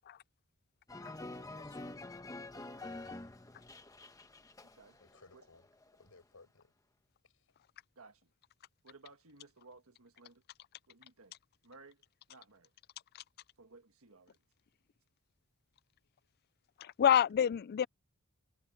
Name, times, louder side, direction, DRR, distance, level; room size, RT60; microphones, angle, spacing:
sound 1, 0.9-5.3 5.6-6.0, left 2 dB, 15° left, 1.2 m, -47 dB
voice 1, 1.1-2.1 2.9-3.3 5.0-5.7 5.9-6.7 7.2-7.5, left 3 dB, 70° left, 6.3 m, -62 dB
voice 2, 4.6-5.0 5.3-5.4 7.9-8.3 8.8-10.4 10.9-11.3 11.6-12.7 13.6-14.4, right 3 dB, 70° right, 1.6 m, -58 dB
voice 3, 16.8-17.9, left 9 dB, 45° left, 0.3 m, -27 dB
head